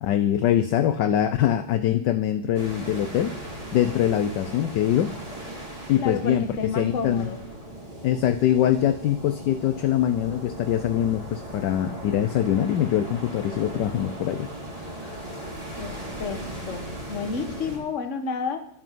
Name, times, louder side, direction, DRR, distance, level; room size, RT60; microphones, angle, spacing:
voice 1, 0.0-5.1 5.9-7.3 8.0-14.5 15.0-15.2, left 11 dB, 70° left, 11 dB, 1.2 m, -23 dB
sound 1, 2.5-17.8, right 1 dB, 15° right, 3.4 m, -38 dB
voice 2, 6.0-7.4 15.8-18.6, left 5 dB, 40° left, 8 dB, 1.4 m, -31 dB
12.5 x 9.3 x 7.6 m, 0.75 s
omnidirectional pair, 2.2 m